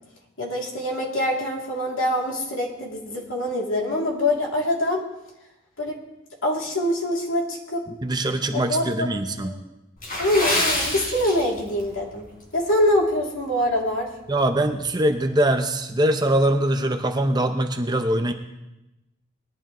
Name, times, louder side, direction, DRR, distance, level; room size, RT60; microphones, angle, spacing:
voice 1, 0.4-5.0 5.8-6.0 6.4-7.8 8.5-9.1 9.4-9.6 10.2-12.2 12.5-14.1, left 1 dB, 70° left, -2 dB, 2.8 m, -24 dB
voice 2, 7.9-9.5 14.3-18.3, right 1 dB, 20° right, 6 dB, 0.7 m, -22 dB
Water / Splash splatter, 10.0-11.9 12.2-12.4 13.0-13.2 13.7-13.8, left 1 dB, 45° left, 3.8 m, -26 dB
20.0 x 11.5 x 3.1 m, 0.95 s
head